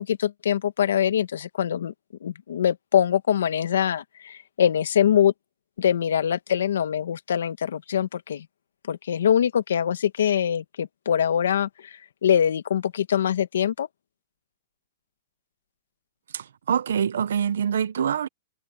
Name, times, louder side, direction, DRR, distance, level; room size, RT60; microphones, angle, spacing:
voice 1, 0.0-1.9 2.2-5.3 5.8-8.5 8.9-13.9, left 9 dB, 80° left, 1.4 m, -23 dB
voice 2, 16.3-18.3, right 8 dB, 80° right, 0.7 m, -25 dB
hypercardioid pair, 180°, 0 cm